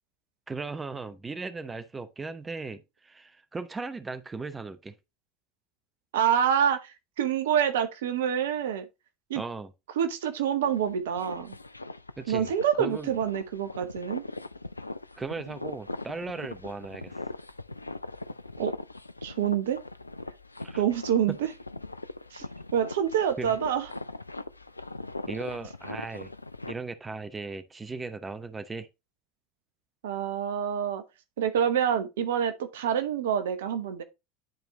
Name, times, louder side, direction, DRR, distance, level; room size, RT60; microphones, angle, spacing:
voice 1, 0.5-4.9 9.3-9.7 12.2-12.5 12.8-13.1 15.2-17.2 20.6-20.8 21.3-21.4 23.4-23.6 25.3-26.3 26.7-28.9, right 4 dB, 15° right, 0.9 m, -37 dB
voice 2, 6.1-8.9 9.3-9.4 10.0-11.5 12.3-14.2 18.6-18.7 19.2-19.8 20.8-21.5 22.3-22.4 22.7-23.9 30.0-31.0 31.4-34.0, right 9 dB, 65° right, 0.8 m, -27 dB
sound 1, 10.6-26.7, left 2 dB, 85° left, 0.4 m, -41 dB
10.5 x 4.4 x 3.0 m
figure-of-eight pair, 75°, 0 cm